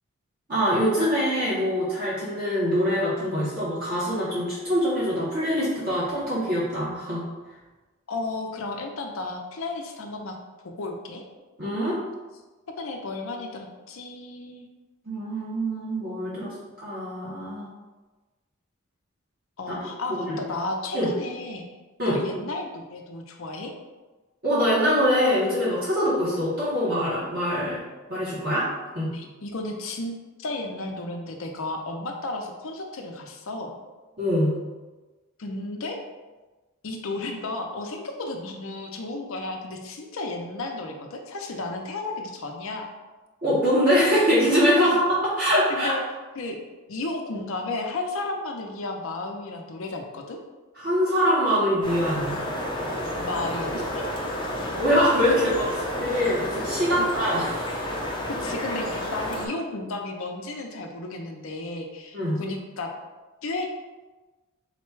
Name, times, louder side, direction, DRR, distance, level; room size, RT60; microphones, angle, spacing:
voice 1, 0.5-7.2 11.6-12.0 15.1-16.5 16.8-17.7 19.7-19.8 20.1-20.4 20.9-21.1 22.0-22.2 24.4-27.8 28.1-28.7 28.9-29.1 34.2-34.6 43.4-44.9 45.2-45.9 50.8-52.4 54.7-57.8 62.1-62.4, equal, 45° right, -8 dB, 0.9 m, -24 dB
voice 2, 8.1-10.4 10.6-11.2 12.8-14.7 16.4-16.5 19.6-21.7 22.1-23.7 29.1-33.7 35.4-36.0 36.8-42.9 44.8-44.9 45.7-46.0 46.4-46.6 46.9-50.4 53.2-54.1 57.0-57.1 58.4-62.9 63.4-63.7, left 2 dB, 70° left, 3 dB, 0.6 m, -33 dB
sound 1, 51.8-59.5, left 1 dB, 20° left, 0.5 m, -30 dB
4.0 x 2.2 x 4.5 m, 1.2 s
head